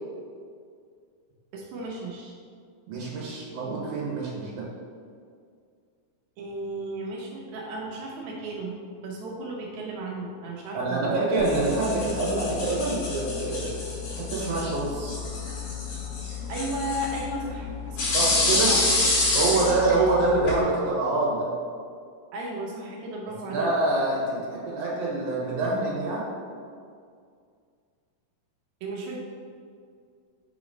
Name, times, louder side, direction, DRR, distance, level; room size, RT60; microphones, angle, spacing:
voice 1, 1.5-2.4 6.4-8.8 9.0-11.2 16.3-18.1 18.5-18.8 19.5-19.8 22.3-23.7 28.8-29.2, right 1 dB, 90° right, -3 dB, 1.6 m, -34 dB
voice 2, 2.9-4.7 10.7-13.7 14.2-15.2 18.1-18.7 19.3-21.5 23.4-26.3, right 2 dB, 55° right, -5 dB, 1.9 m, -26 dB
sound 1, 11.4-20.6, left 3 dB, 75° left, 3.5 m, -28 dB
6.7 x 3.0 x 5.1 m, 2.2 s
omnidirectional pair, 4.3 m